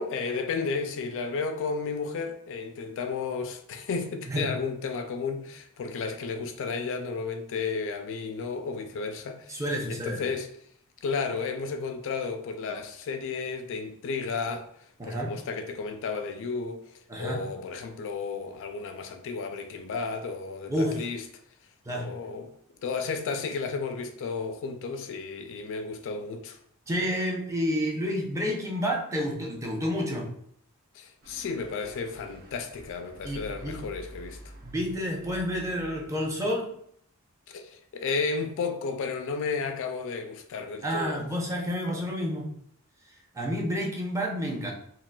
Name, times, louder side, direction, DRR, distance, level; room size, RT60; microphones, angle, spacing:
voice 1, 0.0-9.6 9.9-10.5 11.0-14.7 15.0-16.9 17.2-21.2 21.9-22.5 22.8-26.6 30.9-34.4 37.5-41.2, left 4 dB, 60° left, 0.3 m, -33 dB
voice 2, 9.5-10.2 15.0-15.3 17.1-17.4 20.7-21.0 21.9-22.1 26.9-30.3 33.2-33.8 34.6-36.7 40.8-42.6 43.3-44.7, equal, 15° right, 0.5 m, -29 dB
sound 1, 31.2-36.3, equal, 45° right, 0.8 m, -48 dB
3.7 x 2.4 x 2.2 m
head